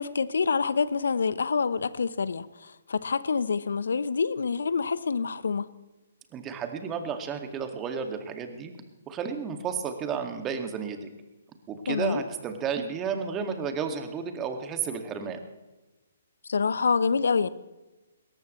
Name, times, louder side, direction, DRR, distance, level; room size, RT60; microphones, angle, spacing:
voice 1, 0.0-5.7 11.9-12.2 16.5-17.5, left 5 dB, 70° left, 16 dB, 0.9 m, -26 dB
voice 2, 6.3-8.7 9.1-11.1 11.7-15.4, right 6 dB, 20° right, 6 dB, 2.1 m, -32 dB
21.0 x 18.5 x 3.2 m, 1.1 s
figure-of-eight pair, 130°, 0 cm